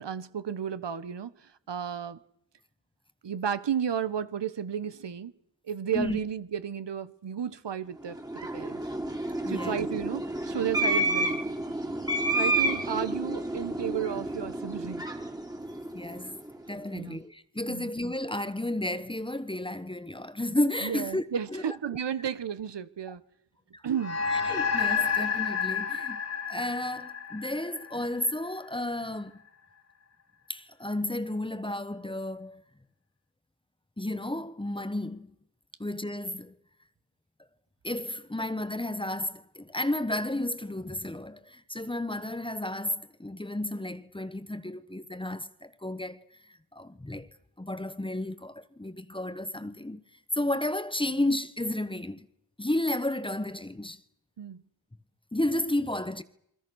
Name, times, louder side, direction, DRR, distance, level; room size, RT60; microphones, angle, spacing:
voice 1, 0.0-2.2 3.2-5.3 5.7-8.8 9.5-11.4 12.3-15.1 16.9-17.2 17.7-17.9 20.8-23.2 23.8-24.2 54.4-54.6, right 8 dB, 65° right, 1.4 m, -33 dB
sound 1, 8.0-16.6, right 1 dB, 10° right, 2.6 m, -30 dB
voice 2, 9.4-9.8 15.9-16.4 16.7-21.2 21.5-21.6 23.7-23.8 24.3-26.2 26.5-29.4 30.5-32.6 34.0-35.3 35.8-36.6 37.8-47.3 47.6-50.0 50.3-52.3 52.6-54.0 55.3-56.2, left 1 dB, 10° left, 1.2 m, -32 dB
sound 2, 24.0-28.7, left 6 dB, 35° left, 2.4 m, -30 dB
29.0 x 24.0 x 6.4 m
wide cardioid pair, 125°, 45 cm